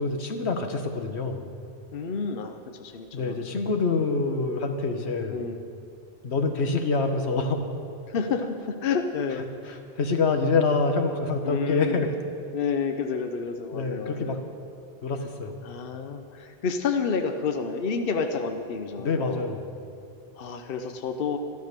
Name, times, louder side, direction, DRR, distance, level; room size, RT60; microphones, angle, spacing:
voice 1, 0.0-1.5 3.1-5.4 6.2-7.6 9.7-12.1 13.7-14.4 15.0-15.5 19.0-19.7, left 3 dB, 85° left, 6 dB, 1.4 m, -26 dB
voice 2, 1.9-3.5 5.3-5.6 8.1-9.5 11.4-12.1 12.5-14.4 15.6-19.5 20.4-21.4, left 5 dB, 60° left, 6 dB, 0.9 m, -30 dB
13.0 x 12.0 x 6.7 m, 2.4 s
omnidirectional pair, 1.1 m